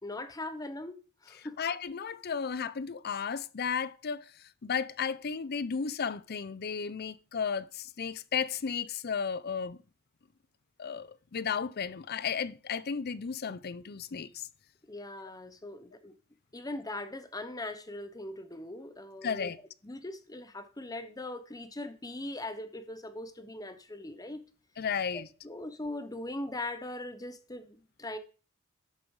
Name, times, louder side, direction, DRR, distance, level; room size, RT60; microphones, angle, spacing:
voice 1, 0.0-1.6 14.9-16.2 16.5-19.5 19.8-24.4 25.1-28.2, left 2 dB, 15° left, 0.8 m, -40 dB
voice 2, 1.4-9.8 10.8-14.5 19.2-19.6 24.8-25.3, left 6 dB, 45° left, 0.5 m, -34 dB
11.5 x 7.0 x 4.8 m
head